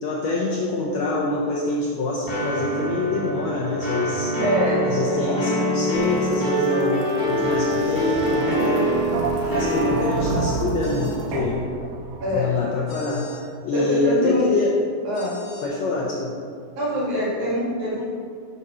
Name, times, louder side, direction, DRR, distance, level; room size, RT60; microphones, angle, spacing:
voice 1, 0.0-4.4 4.8-8.9 9.5-11.7 12.3-13.3 13.7-14.7 15.6-16.4, left 3 dB, 75° left, -4 dB, 1.7 m, -25 dB
sound 1, 2.3-10.5, equal, 10° left, 1.0 m, -25 dB
voice 2, 4.4-5.7 12.2-12.6 13.7-14.5 15.1-15.4 15.9-16.0 16.8-18.0, equal, 60° right, -7 dB, 3.5 m, -24 dB
sound 2, 5.9-12.7, right 3 dB, 85° right, 2.6 m, -30 dB
sound 3, 10.8-11.2 12.9-13.4 15.1-15.7, left 3 dB, 55° left, 1.2 m, -44 dB
8.0 x 4.2 x 6.2 m, 2.1 s
omnidirectional pair, 3.9 m